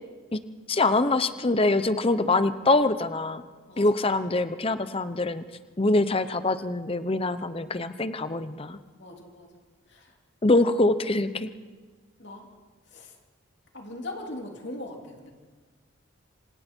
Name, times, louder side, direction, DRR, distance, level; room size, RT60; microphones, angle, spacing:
voice 1, 0.7-3.4 3.8-5.4 5.8-8.8 10.4-11.5, left 2 dB, 25° left, 12 dB, 0.8 m, -24 dB
voice 2, 3.7-4.1 9.0-9.5 9.9-10.1 12.2-12.5 12.9-13.1 13.7-15.3, left 1 dB, 55° left, 1 dB, 3.1 m, -40 dB
27.0 x 26.0 x 4.5 m, 1.4 s
head